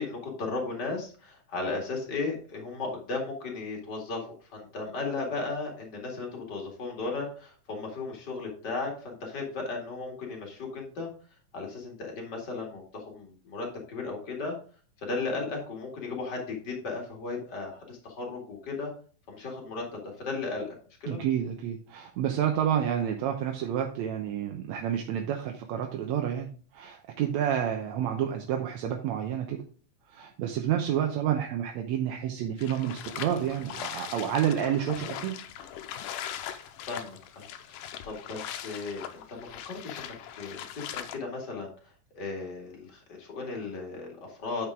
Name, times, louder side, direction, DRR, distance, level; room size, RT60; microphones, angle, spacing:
voice 1, 0.0-11.1 11.5-14.5 15.0-18.9 19.3-20.8 21.0-21.2 36.8-37.8 38.0-44.7, left 3 dB, 35° left, 0 dB, 2.5 m, -36 dB
voice 2, 21.1-26.5 26.7-29.6 30.1-35.4, right 9 dB, 70° right, 3 dB, 1.9 m, -29 dB
sound 1, 32.6-41.2, left 10 dB, 90° left, 2.3 m, -40 dB
9.0 x 6.1 x 3.6 m, 0.42 s
omnidirectional pair, 3.7 m